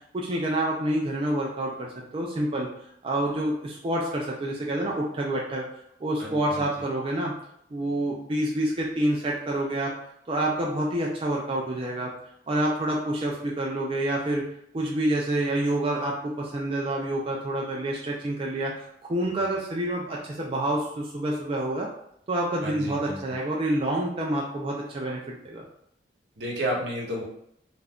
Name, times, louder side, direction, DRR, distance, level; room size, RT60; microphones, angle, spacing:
voice 1, 0.1-2.7 3.0-5.6 6.0-7.3 7.7-9.9 10.3-12.1 12.5-14.4 14.7-21.9 22.3-25.6, right 1 dB, 30° right, -2 dB, 0.4 m, -28 dB
voice 2, 6.2-6.6 22.6-23.2 26.4-27.2, equal, 70° right, -2 dB, 0.8 m, -31 dB
2.4 x 2.2 x 3.5 m, 0.74 s
head